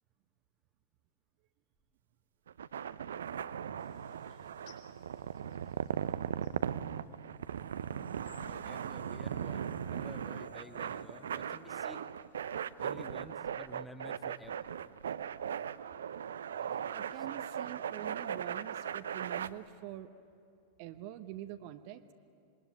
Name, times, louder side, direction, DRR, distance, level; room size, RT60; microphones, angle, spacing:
sound 1, 2.5-19.5, right 8 dB, 65° right, 0.6 m, -38 dB
sound 2, 3.8-7.3 7.9-9.0, left 10 dB, 45° left, 5.7 m, -66 dB
sound 3, 7.3-12.5, right 1 dB, 90° right, 3.4 m, -57 dB
voice 1, 8.3-12.1 12.8-14.6 16.6-17.4, left 1 dB, 5° left, 7 dB, 1.6 m, -52 dB
voice 2, 16.9-20.1 20.8-22.1, right 13 dB, 45° right, 10 dB, 1.0 m, -45 dB
27.0 x 22.0 x 9.4 m, 2.4 s
figure-of-eight pair, 90°, 0 cm